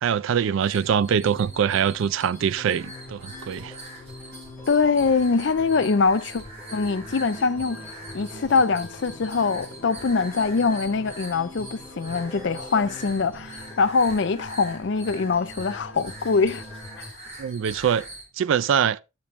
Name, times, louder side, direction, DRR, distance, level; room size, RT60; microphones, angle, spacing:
voice 1, 0.0-3.7 17.4-18.1 18.4-19.0, right 8 dB, 65° right, 0.3 m, -23 dB
sound 1, 0.6-18.2, right 1 dB, 30° right, 2.8 m, -44 dB
sound 2, 1.1-17.1, left 1 dB, 10° left, 4.4 m, -43 dB
voice 2, 4.7-6.4 6.7-7.8 8.1-16.6 17.0-17.1, left 4 dB, 55° left, 0.5 m, -23 dB
Singing, 6.7-13.5, right 2 dB, 10° right, 1.8 m, -50 dB
10.0 x 7.1 x 2.5 m
head